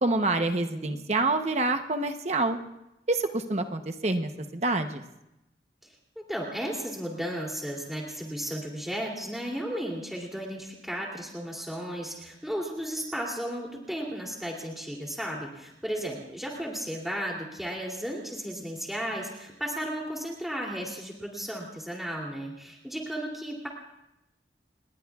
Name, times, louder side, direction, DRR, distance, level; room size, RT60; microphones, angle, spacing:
voice 1, 0.0-2.6 3.1-5.0, right 2 dB, 40° right, 7 dB, 0.9 m, -27 dB
voice 2, 0.7-1.0 5.8-5.9 6.3-23.7, equal, ahead, -2 dB, 2.8 m, -34 dB
30.0 x 20.0 x 2.4 m, 0.90 s
head